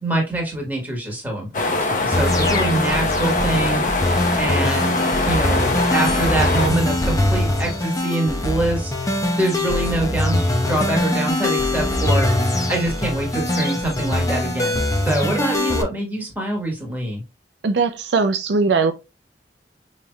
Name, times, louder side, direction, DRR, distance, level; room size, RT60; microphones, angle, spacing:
voice 1, 0.0-5.0 5.2-12.4 12.7-17.2, right 1 dB, 10° right, 1.4 m, -25 dB
sound 1, 1.5-6.7, left 2 dB, 45° left, 0.9 m, -23 dB
sound 2, 2.1-15.8, left 1 dB, 20° left, 0.6 m, -22 dB
voice 2, 17.6-18.9, right 4 dB, 70° right, 0.4 m, -19 dB
5.3 x 3.2 x 2.3 m
head